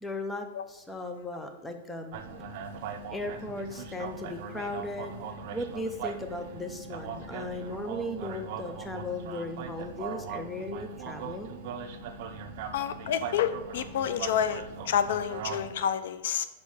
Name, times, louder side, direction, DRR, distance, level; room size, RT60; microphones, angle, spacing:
voice 1, 0.0-2.2 3.1-5.2 5.5-11.5, left 1 dB, 5° left, 5 dB, 0.7 m, -37 dB
sound 1, 2.1-15.7, right 5 dB, 45° right, 0.8 m, -40 dB
voice 2, 12.7-16.4, left 9 dB, 65° left, 12 dB, 0.5 m, -29 dB
5.3 x 5.2 x 6.4 m, 1.1 s
supercardioid pair, 155°, 0 cm